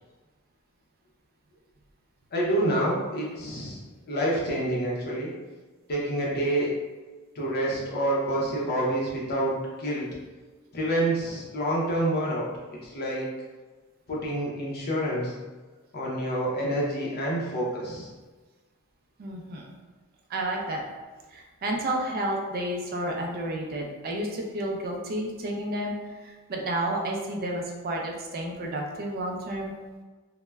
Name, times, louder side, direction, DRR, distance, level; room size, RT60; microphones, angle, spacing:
voice 1, 2.3-3.8 4.1-5.3 5.9-6.7 7.3-10.1 10.7-12.5 12.8-13.3 14.1-15.4 15.9-18.1, right 1 dB, 45° left, -5 dB, 0.5 m, -27 dB
voice 2, 19.2-19.7 20.3-20.8 21.3-29.7, right 1 dB, 45° right, 0 dB, 0.4 m, -31 dB
2.1 x 2.0 x 3.2 m, 1.3 s
head